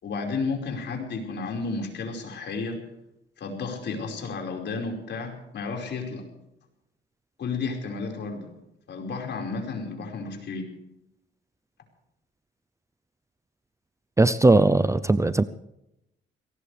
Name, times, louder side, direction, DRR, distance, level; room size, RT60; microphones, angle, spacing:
voice 1, 0.0-2.8 3.4-6.3 7.4-8.5 8.9-10.7, left 4 dB, 60° left, 2 dB, 5.1 m, -32 dB
voice 2, 14.2-15.4, right 2 dB, 15° right, 13 dB, 0.6 m, -19 dB
22.5 x 18.5 x 3.4 m, 0.86 s
cardioid pair, 90°, 20 cm